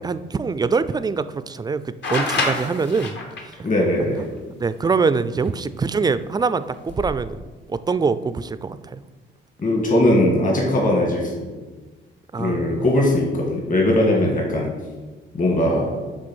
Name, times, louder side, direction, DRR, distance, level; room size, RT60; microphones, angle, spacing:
voice 1, 0.0-3.7 4.1-4.3 4.6-7.4 7.7-9.0 12.3-13.0, right 4 dB, 20° right, 14 dB, 0.3 m, -24 dB
sound 1, 2.0-3.5 5.5-5.6 6.7-7.1, left 3 dB, 65° left, 1.5 m, -26 dB
voice 2, 3.6-4.3 9.6-11.5 12.4-14.7 15.3-16.0, left 1 dB, 40° left, -1 dB, 1.8 m, -20 dB
7.7 x 3.4 x 6.3 m, 1.3 s
cardioid pair, 90°, 20 cm